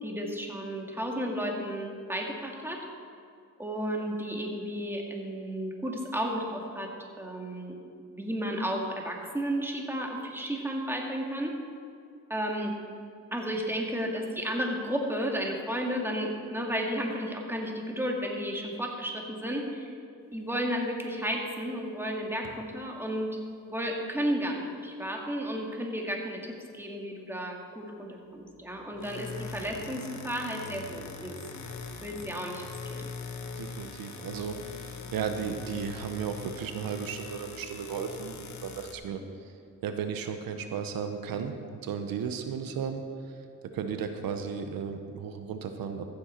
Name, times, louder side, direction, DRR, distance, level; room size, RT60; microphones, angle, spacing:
voice 1, 0.0-2.8 3.6-6.9 7.2-11.5 12.3-12.7 13.3-19.9 20.3-23.4 23.7-31.4 32.0-32.6 32.9-33.1, equal, 5° right, 0 dB, 1.9 m, -33 dB
sound 1, 22.4-22.7 28.8-38.9, left 4 dB, 55° left, 1.2 m, -42 dB
voice 2, 33.6-39.5 39.8-43.3 43.7-46.1, right 6 dB, 85° right, 7 dB, 0.8 m, -35 dB
15.0 x 7.5 x 4.4 m, 2.4 s
cardioid pair, 75°, 34 cm